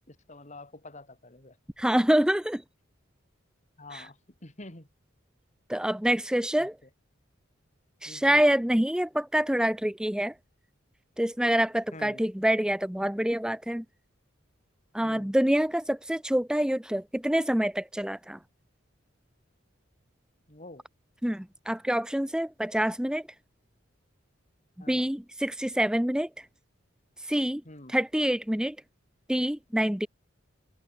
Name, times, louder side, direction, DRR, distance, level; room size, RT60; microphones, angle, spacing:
voice 1, 0.1-1.6 3.8-4.9 6.6-6.9 8.0-8.4 11.9-12.2 15.0-15.3 20.5-20.8 24.8-25.1 27.6-27.9, left 2 dB, 35° left, 3.2 m, -47 dB
voice 2, 1.8-2.6 3.9-4.0 5.7-6.7 8.0-10.3 11.2-13.8 14.9-18.4 21.2-23.2 24.9-26.5 27.2-27.6 27.9-28.8 29.3-30.1, equal, 5° right, 0.6 m, -26 dB
head